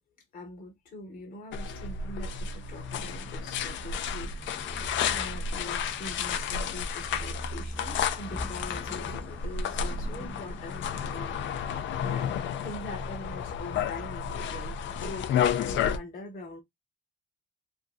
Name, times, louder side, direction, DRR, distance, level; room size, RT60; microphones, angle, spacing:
voice 1, 0.3-4.3 5.1-11.4 12.0-16.6, left 2 dB, 45° left, 0.8 m, -43 dB
sound 1, 1.5-16.0, left 7 dB, 70° left, 0.4 m, -32 dB
sound 2, 1.6-15.3, right 2 dB, 70° right, 0.6 m, -47 dB
sound 3, 3.0-13.9, left 1 dB, 5° left, 0.4 m, -48 dB
2.6 x 2.5 x 2.2 m
cardioid pair, 90°, 20 cm